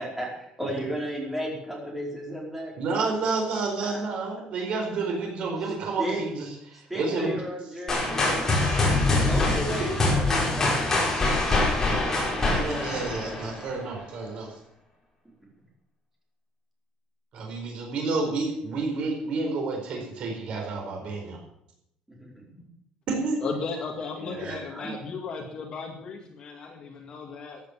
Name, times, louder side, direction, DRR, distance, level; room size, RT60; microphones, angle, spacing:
voice 1, 0.0-3.3 3.8-4.0 5.6-6.2 6.7-8.6 9.2-12.0 12.2-12.6 22.1-22.7 24.2-24.9, right 1 dB, 5° right, -2 dB, 4.8 m, -35 dB
voice 2, 2.8-6.5 6.7-7.4 8.9-9.1 12.5-14.5 17.3-21.4 23.1-23.4 24.3-24.6, right 3 dB, 55° right, 2 dB, 4.5 m, -30 dB
sound 1, 7.9-13.8, left 2 dB, 20° left, 5.3 m, -24 dB
voice 3, 23.4-27.6, left 5 dB, 40° left, 2 dB, 2.1 m, -35 dB
15.0 x 10.5 x 7.1 m, 0.75 s
cardioid pair, 165°, 2 cm